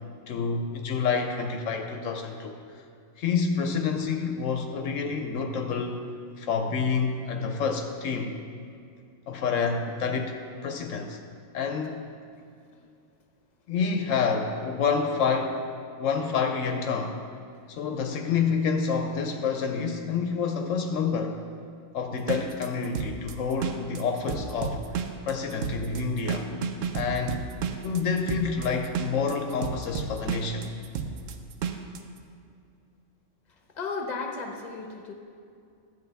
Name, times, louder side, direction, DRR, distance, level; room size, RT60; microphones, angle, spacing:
voice 1, 0.3-2.6 3.2-6.0 6.4-8.3 9.3-10.4 10.6-11.2 11.5-12.0 13.7-15.7 16.0-17.2 17.7-21.4 21.9-26.5 26.9-27.4 27.8-30.7, left 5 dB, 75° left, 5 dB, 1.0 m, -28 dB
sound 1, 22.2-32.0, right 7 dB, 75° right, 1.0 m, -32 dB
voice 2, 33.5-35.1, left 4 dB, 35° left, 2 dB, 1.0 m, -35 dB
12.5 x 8.5 x 3.4 m, 2.4 s
omnidirectional pair, 1.3 m